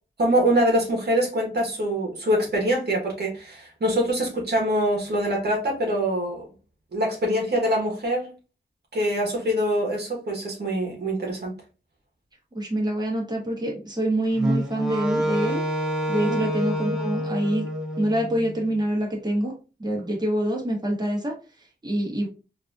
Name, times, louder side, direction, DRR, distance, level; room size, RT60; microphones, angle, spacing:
voice 1, 0.2-6.5 6.9-8.3 8.9-11.5 16.2-16.4, equal, 60° right, -1 dB, 1.2 m, -24 dB
voice 2, 12.5-15.6 16.1-17.6 18.0-21.3 21.8-22.3, right 1 dB, 20° right, -2 dB, 1.3 m, -26 dB
Wind instrument woodwind instrument, 14.4-18.6, equal, 5° right, 0.8 m, -27 dB
3.9 x 2.7 x 2.4 m, 0.32 s
wide cardioid pair, 85°, 19 cm